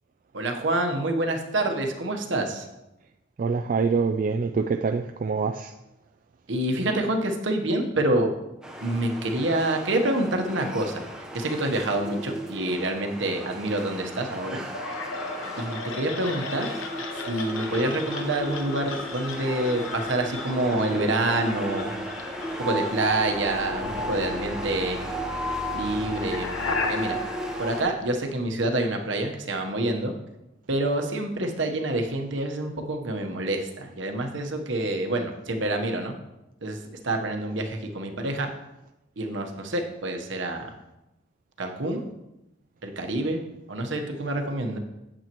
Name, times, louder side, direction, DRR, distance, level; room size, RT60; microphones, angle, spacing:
voice 1, 0.3-2.7 6.5-8.3 8.8-11.0 11.3-14.6 15.6-16.7 17.3-21.9 22.6-25.0 25.7-26.5 26.7-27.2 27.6-30.1 30.7-36.1 36.6-38.5 39.2-40.7 41.6-42.0 42.8-43.4 43.7-44.8, right 1 dB, 70° right, 1.1 m, -27 dB
voice 2, 3.4-5.7, right 4 dB, 45° right, 0.3 m, -25 dB
sound 1, 8.6-27.8, equal, 5° right, 0.9 m, -35 dB
sound 2, 14.7-28.6, left 3 dB, 90° left, 1.0 m, -36 dB
8.9 x 8.0 x 3.0 m
head